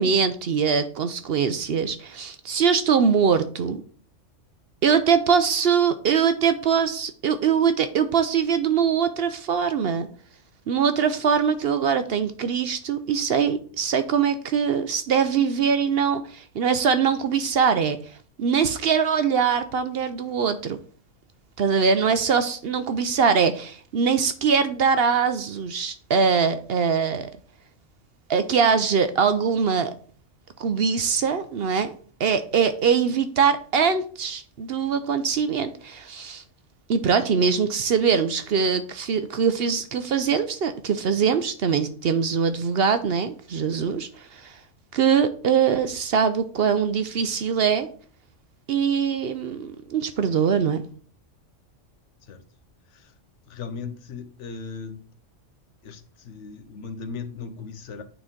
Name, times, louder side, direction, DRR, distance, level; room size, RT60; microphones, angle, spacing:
voice 1, 0.0-3.8 4.8-10.1 10.7-18.0 18.4-20.8 21.6-27.3 28.3-29.9 30.6-31.9 32.2-36.4 36.9-44.5 44.9-47.9 48.7-50.8, right 6 dB, 60° right, 0.7 m, -22 dB
voice 2, 53.5-55.1 55.8-58.0, left 5 dB, 70° left, 1.1 m, -37 dB
8.9 x 4.0 x 3.7 m
omnidirectional pair, 1.3 m